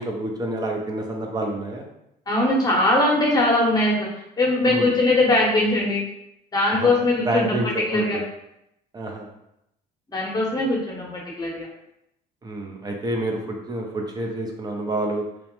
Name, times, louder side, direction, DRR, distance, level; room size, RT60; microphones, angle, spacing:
voice 1, 0.0-1.9 4.6-4.9 6.8-6.9 7.2-8.2 8.9-9.3 12.4-15.2, right 1 dB, 25° right, 1 dB, 0.5 m, -28 dB
voice 2, 2.3-4.1 4.4-6.0 6.5-7.6 7.9-8.2 10.1-11.7, left 2 dB, 25° left, -3 dB, 0.9 m, -21 dB
2.9 x 2.0 x 3.1 m, 0.81 s
cardioid pair, 110°, 17 cm